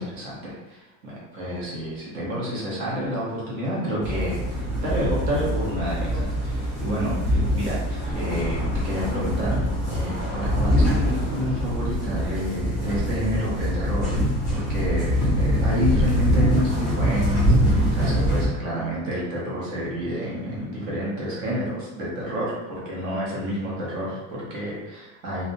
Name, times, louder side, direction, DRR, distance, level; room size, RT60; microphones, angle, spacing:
voice 1, 0.0-4.4 4.8-25.5, equal, 55° right, -6 dB, 1.0 m, -29 dB
sound 1, 4.0-18.5, equal, 15° right, 0.3 m, -24 dB
2.5 x 2.1 x 2.6 m, 1.0 s
supercardioid pair, 175°, 48 cm